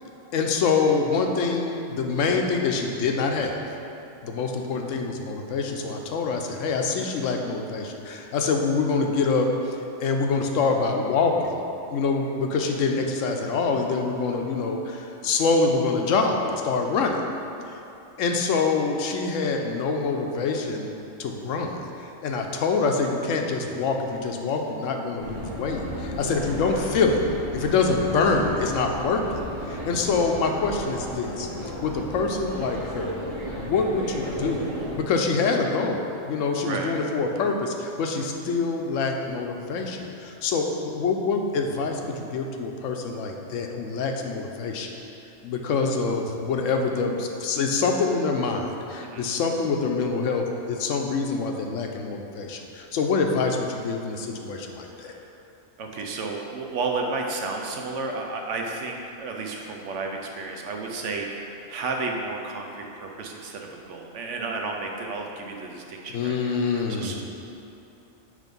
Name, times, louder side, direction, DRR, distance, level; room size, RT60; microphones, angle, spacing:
voice 1, 0.3-3.6 4.2-9.7 10.0-11.6 11.9-17.2 18.2-20.9 21.2-27.2 27.5-29.2 29.7-33.1 33.6-34.6 34.9-44.9 45.4-55.1 66.1-67.2, left 4 dB, 80° left, 3 dB, 1.0 m, -25 dB
sound 1, 25.2-35.0, equal, 25° right, 1.0 m, -34 dB
voice 2, 26.3-27.0 32.6-32.7 36.6-36.9 49.0-49.2 54.9-55.3 55.8-67.2, right 3 dB, 70° right, 1 dB, 1.0 m, -33 dB
7.6 x 3.3 x 5.2 m, 2.9 s
omnidirectional pair, 1.3 m